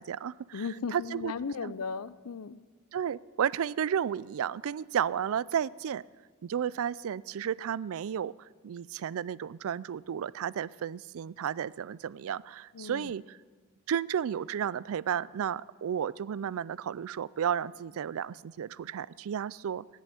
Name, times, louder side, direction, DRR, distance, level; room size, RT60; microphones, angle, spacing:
voice 1, 0.0-0.7 0.9-1.3 1.6-1.7 2.9-6.0 6.4-13.4 13.9-19.9, right 8 dB, 65° right, 21 dB, 0.4 m, -33 dB
voice 2, 0.5-2.6 12.7-13.1, left 5 dB, 80° left, 16 dB, 0.6 m, -36 dB
15.0 x 10.5 x 7.8 m, 1.4 s
head